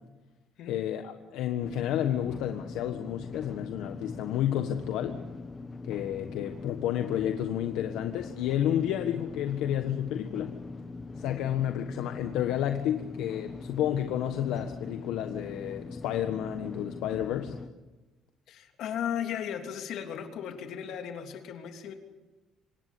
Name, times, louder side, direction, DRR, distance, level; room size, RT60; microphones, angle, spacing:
voice 1, 0.7-5.2 5.8-10.6 11.2-17.5, left 11 dB, 80° left, 6 dB, 1.4 m, -31 dB
sound 1, 1.6-17.7, left 3 dB, 20° left, 1.0 m, -42 dB
voice 2, 18.5-21.9, left 9 dB, 60° left, 5 dB, 3.1 m, -36 dB
26.0 x 19.0 x 8.5 m, 1.1 s
cardioid pair, 155°, 0 cm